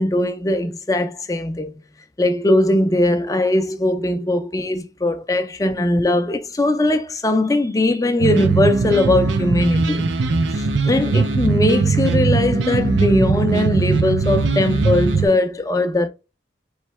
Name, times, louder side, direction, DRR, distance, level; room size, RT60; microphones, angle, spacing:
voice 1, 0.0-1.7 2.2-10.1 10.5-16.1, left 1 dB, 20° left, 0.4 m, -20 dB
sound 1, 8.2-15.3, right 4 dB, 85° right, 0.6 m, -20 dB
4.4 x 3.2 x 3.1 m
head